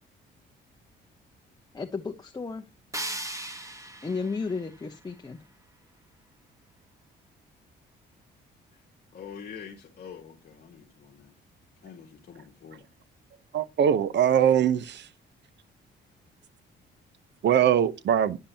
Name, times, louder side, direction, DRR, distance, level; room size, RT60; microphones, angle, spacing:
voice 1, 1.7-2.7 4.0-5.4, left 4 dB, 20° left, 1.0 m, -33 dB
sound 1, 2.9-5.9, right 1 dB, 15° right, 1.3 m, -39 dB
voice 2, 9.1-11.3 11.8-12.9, left 7 dB, 50° left, 1.5 m, -45 dB
voice 3, 13.5-15.1 17.4-18.4, right 9 dB, 60° right, 0.8 m, -22 dB
10.0 x 5.4 x 2.8 m
cardioid pair, 90°, 20 cm